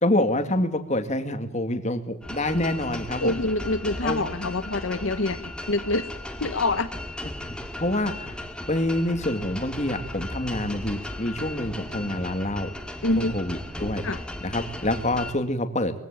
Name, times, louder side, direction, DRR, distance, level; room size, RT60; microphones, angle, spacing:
voice 1, 0.0-3.3 4.0-4.2 7.5-8.4 8.7-12.7 13.2-14.0 14.4-15.9, left 1 dB, 35° left, 8 dB, 2.4 m, -27 dB
sound 1, 2.2-15.3, left 1 dB, 5° left, 2.4 m, -36 dB
voice 2, 3.2-6.1 6.4-6.9 13.0-13.3 14.0-14.2, left 2 dB, 65° left, 10 dB, 1.1 m, -26 dB
22.5 x 16.0 x 8.9 m, 0.80 s
head